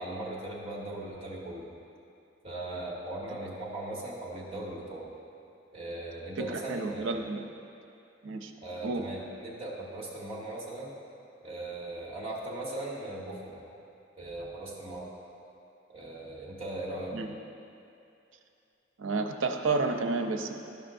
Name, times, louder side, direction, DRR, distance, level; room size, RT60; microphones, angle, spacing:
voice 1, 0.0-1.7 2.4-5.1 5.7-7.2 8.6-10.9 11.4-13.6 14.2-15.1 15.9-17.2, right 1 dB, 30° right, -5 dB, 1.4 m, -38 dB
voice 2, 6.4-7.5 8.2-8.5 8.8-9.0 17.1-17.3 19.0-20.5, right 3 dB, 85° right, 5 dB, 0.6 m, -31 dB
13.0 x 5.5 x 2.6 m, 2.6 s
head